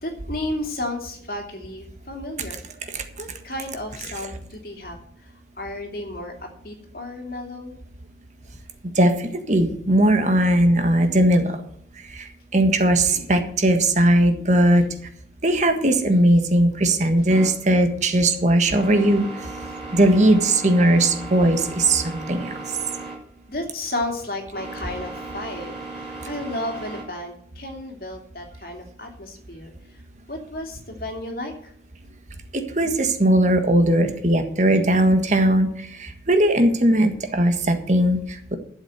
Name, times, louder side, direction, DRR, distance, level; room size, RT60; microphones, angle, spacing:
voice 1, 0.0-2.6 3.2-5.0 5.6-7.8 18.7-18.8 23.5-29.7 30.3-31.7, left 1 dB, 55° left, 3 dB, 2.9 m, -33 dB
voice 2, 8.9-11.6 12.1-14.8 15.4-19.3 19.9-22.5 32.5-38.5, right 1 dB, 40° right, 7 dB, 1.6 m, -19 dB
sound 1, 17.3-27.0, right 3 dB, ahead, 6.7 m, -37 dB
12.0 x 7.4 x 8.0 m, 0.64 s
head